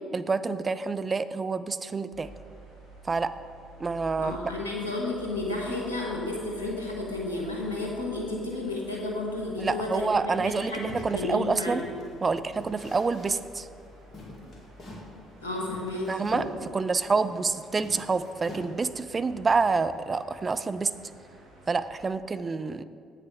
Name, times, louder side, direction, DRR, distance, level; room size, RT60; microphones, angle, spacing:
voice 1, 0.1-2.3 3.0-3.3 3.8-4.4 9.6-11.8 12.2-13.7 16.1-20.9 21.7-22.8, right 4 dB, 30° right, 12 dB, 0.4 m, -27 dB
sound 1, 2.1-22.0, right 3 dB, 70° right, 1.6 m, -51 dB
voice 2, 4.2-10.1 10.4-11.8 15.4-16.1, left 2 dB, 85° left, -2 dB, 1.3 m, -32 dB
sound 2, 10.4-12.1 12.6-13.5 13.8-13.9 14.1-15.1 15.6-17.5 17.8-19.0, left 1 dB, 40° left, 2.0 m, -43 dB
8.2 x 6.6 x 5.0 m, 2.5 s
figure-of-eight pair, 50°, 0 cm